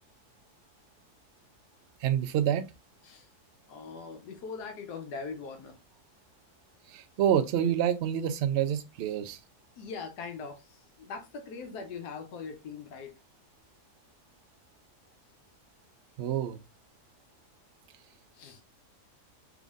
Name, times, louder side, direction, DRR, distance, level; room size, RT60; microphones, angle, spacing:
voice 1, 2.0-2.6 6.9-9.4 16.2-16.6, right 10 dB, 80° right, 0.5 m, -27 dB
voice 2, 3.7-5.8 9.8-13.2 18.3-18.6, left 5 dB, 85° left, 1.3 m, -41 dB
3.7 x 3.4 x 2.4 m
omnidirectional pair, 1.7 m